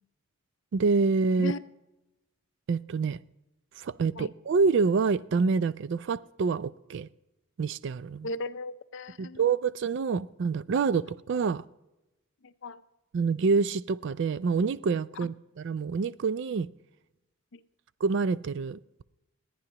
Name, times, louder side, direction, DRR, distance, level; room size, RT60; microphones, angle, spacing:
voice 1, 0.7-1.5 2.7-3.2 3.8-7.1 7.6-8.3 9.2-11.6 13.1-16.7 18.0-18.8, right 4 dB, 55° right, 0.3 m, -27 dB
voice 2, 8.2-9.4 12.4-12.8 17.5-17.6, left 2 dB, 60° left, 0.5 m, -36 dB
29.0 x 10.0 x 2.9 m
head